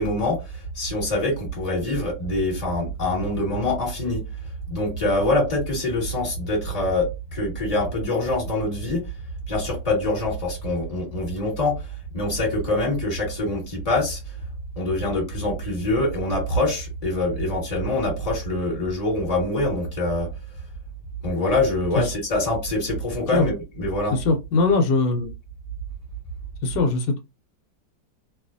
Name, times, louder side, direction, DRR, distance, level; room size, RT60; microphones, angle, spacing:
voice 1, 0.0-4.2 4.7-9.0 9.5-11.8 12.1-14.2 14.7-20.3 21.2-24.2, left 1 dB, 20° left, 1.4 m, -24 dB
voice 2, 24.1-25.3 26.6-27.2, left 3 dB, 80° left, 1.3 m, -21 dB
2.9 x 2.4 x 2.5 m
omnidirectional pair, 1.9 m